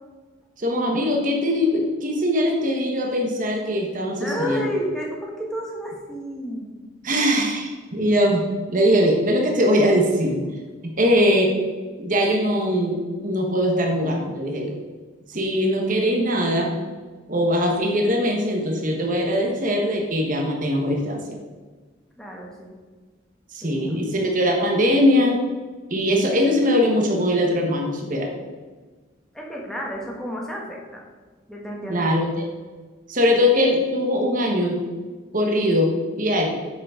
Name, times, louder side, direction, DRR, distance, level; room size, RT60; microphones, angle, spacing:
voice 1, 0.6-4.7 7.0-10.4 10.8-11.5 12.0-14.8 15.3-16.8 17.3-21.4 23.5-25.4 25.9-28.3 31.9-32.4 33.1-34.8 35.3-36.5, equal, 40° right, 1 dB, 1.2 m, -21 dB
voice 2, 4.2-6.9 22.2-22.8 23.6-24.0 29.3-31.0 31.5-32.3, equal, 5° left, -3 dB, 1.3 m, -31 dB
7.6 x 6.3 x 4.9 m, 1.4 s
head